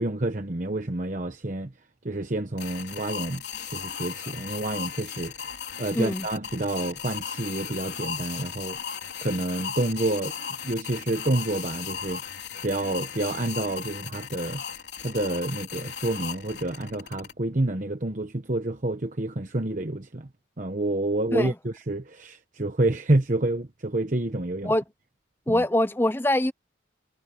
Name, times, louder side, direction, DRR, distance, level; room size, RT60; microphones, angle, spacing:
voice 1, 0.0-1.7 2.0-3.4 3.7-5.3 5.8-8.8 9.2-10.4 10.6-12.2 12.6-14.6 15.0-20.3 20.6-24.7 25.5-25.6, right 2 dB, 40° right, 1.1 m, -28 dB
sound 1, 2.6-17.3, left 7 dB, 60° left, 4.7 m, -36 dB
voice 2, 5.9-6.3 21.3-21.5 24.6-24.8 25.5-26.5, left 1 dB, 10° left, 0.7 m, -23 dB
head